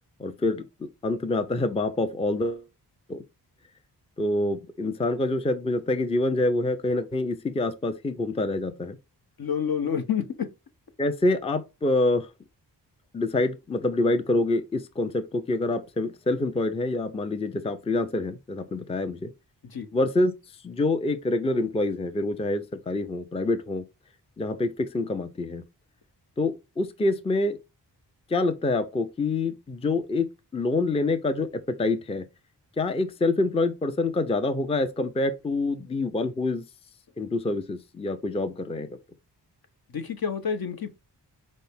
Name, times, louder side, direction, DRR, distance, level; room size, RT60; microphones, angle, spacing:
voice 1, 0.2-2.7 3.1-3.2 4.2-9.0 11.0-12.3 13.1-19.3 19.9-23.8 24.4-25.6 26.4-27.6 28.3-32.2 32.8-36.6 37.2-39.0, left 2 dB, 15° left, 0.5 m, -26 dB
voice 2, 9.4-10.5 19.6-19.9 39.9-40.9, left 7 dB, 60° left, 0.9 m, -28 dB
5.3 x 2.1 x 3.4 m
cardioid pair, 60°, 41 cm